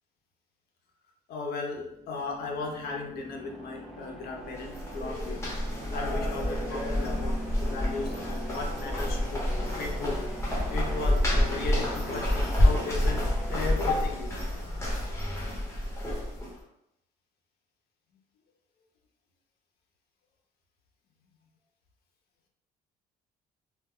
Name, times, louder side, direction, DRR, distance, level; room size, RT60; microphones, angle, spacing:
voice 1, 1.3-5.4 5.9-9.5 9.8-10.2 10.7-14.3, left 3 dB, 65° left, 1 dB, 0.7 m, -36 dB
sound 1, 1.8-14.7, right 1 dB, ahead, 0.4 m, -42 dB
sound 2, 4.4-16.6, left 1 dB, 15° left, 1.0 m, -28 dB
2.3 x 2.1 x 3.6 m, 0.80 s
cardioid pair, 110°, 17 cm